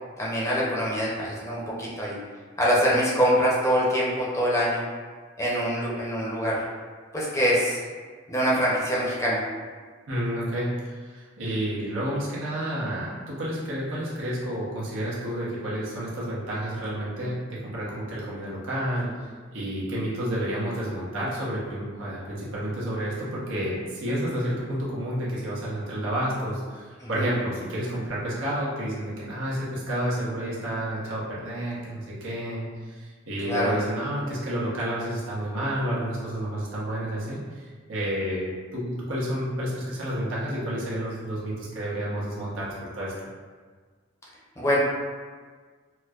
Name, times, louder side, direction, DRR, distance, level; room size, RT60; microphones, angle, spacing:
voice 1, 0.2-2.2 2.6-4.8 5.4-6.6 7.1-7.8 8.3-9.4 27.0-27.2 33.4-33.7 44.6-44.8, equal, 15° left, -6 dB, 0.6 m, -24 dB
voice 2, 10.1-10.7 11.0-19.1 19.5-37.6 37.9-43.1, right 1 dB, 85° right, -7 dB, 1.0 m, -30 dB
4.4 x 2.1 x 2.3 m, 1.5 s
head